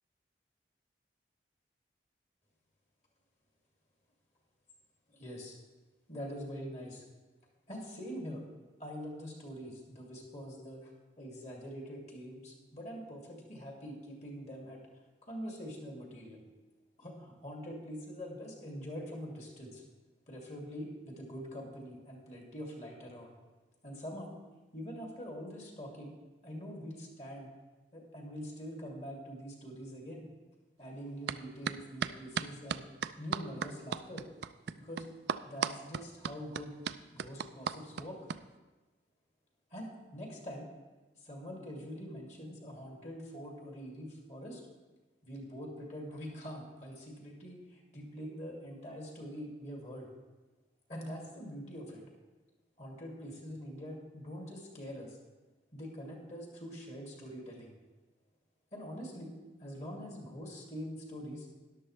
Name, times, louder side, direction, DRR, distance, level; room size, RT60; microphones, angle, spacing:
voice 1, 5.1-5.6 6.1-7.0 7.7-8.4 8.8-10.9 11.2-14.8 15.3-16.4 17.0-19.8 20.3-23.3 23.8-24.3 24.7-26.1 26.4-27.5 27.9-30.2 30.8-32.8 33.2-34.2 34.8-35.1 35.4-36.8 37.1-38.2 39.7-40.7 41.2-44.6 45.2-50.1 50.9-52.0 52.8-55.2 55.7-57.7 58.7-59.3 59.6-61.5, equal, 40° left, -1 dB, 2.5 m, -44 dB
sound 1, 31.3-31.4 31.7-38.4, right 7 dB, 70° right, 0.4 m, -35 dB
13.0 x 11.0 x 3.2 m, 1.2 s
head